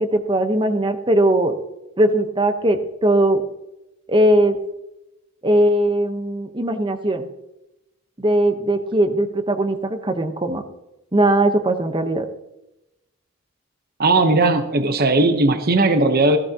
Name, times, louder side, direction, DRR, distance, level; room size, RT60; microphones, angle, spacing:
voice 1, 0.0-1.5 2.0-3.4 4.1-4.6 5.4-7.3 8.2-10.6 11.1-12.2, right 1 dB, 20° right, 7 dB, 1.1 m, -19 dB
voice 2, 14.0-16.4, right 2 dB, 45° right, 7 dB, 1.0 m, -17 dB
16.0 x 15.5 x 3.0 m, 0.94 s
head